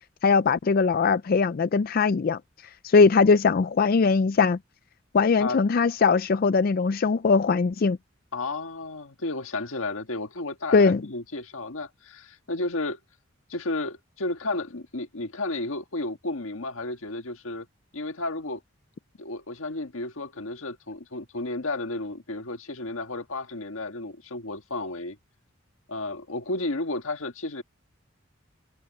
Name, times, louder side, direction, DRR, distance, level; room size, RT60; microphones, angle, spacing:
voice 1, 0.2-2.4 2.8-4.6 5.1-8.0 10.7-11.0, left 4 dB, 45° left, 0.4 m, -20 dB
voice 2, 8.3-13.0 13.5-17.7 17.9-18.6 19.2-25.2 25.9-27.6, left 2 dB, 85° left, 1.6 m, -32 dB
head